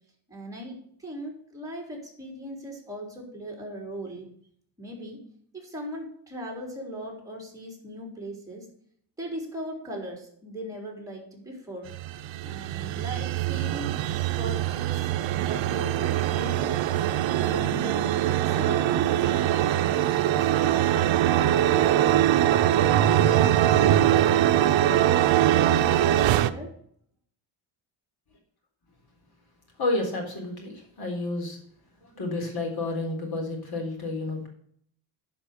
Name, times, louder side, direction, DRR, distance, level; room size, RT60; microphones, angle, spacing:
voice 1, 0.3-4.3 4.8-5.2 5.5-8.7 9.2-11.9 12.4-13.9 14.4-16.9 17.3-20.9 25.4-26.7, equal, 5° right, -1 dB, 3.8 m, -39 dB
sound 1, 11.9-26.5, right 12 dB, 70° right, 0.8 m, -22 dB
voice 2, 29.8-31.6 32.0-34.5, left 2 dB, 50° left, 2 dB, 3.8 m, -30 dB
11.0 x 5.4 x 6.6 m, 0.64 s
cardioid pair, 140°, 46 cm